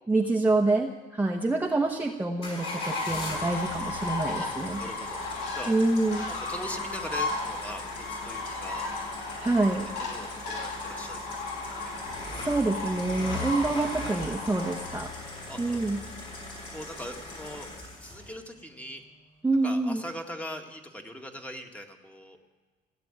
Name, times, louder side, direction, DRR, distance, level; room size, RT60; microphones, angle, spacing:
voice 1, 0.1-4.8 5.7-6.3 9.4-9.9 11.9-15.1 15.6-16.0 19.4-20.0, right 2 dB, 10° right, 1 dB, 1.1 m, -27 dB
sound 1, 2.4-18.3, left 2 dB, 35° left, 6.9 m, -40 dB
sound 2, 2.6-15.0, left 3 dB, 85° left, 2.9 m, -35 dB
voice 2, 4.8-5.2 5.5-5.7 6.3-8.9 10.0-11.4 11.8-11.9 15.5-16.1 16.7-17.7 18.0-19.0 19.6-22.4, equal, 10° left, 3 dB, 1.8 m, -41 dB
17.0 x 8.6 x 8.9 m, 1.3 s
cardioid pair, 110°, 17 cm